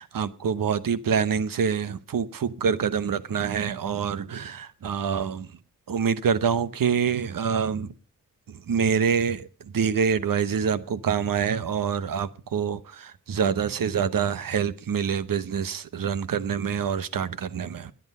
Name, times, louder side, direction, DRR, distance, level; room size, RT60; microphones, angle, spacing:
voice 1, 0.0-5.5 5.9-7.9 8.5-9.5 9.7-17.9, right 7 dB, 85° right, 1.0 m, -26 dB
20.5 x 8.0 x 5.4 m
wide cardioid pair, 70°, 33 cm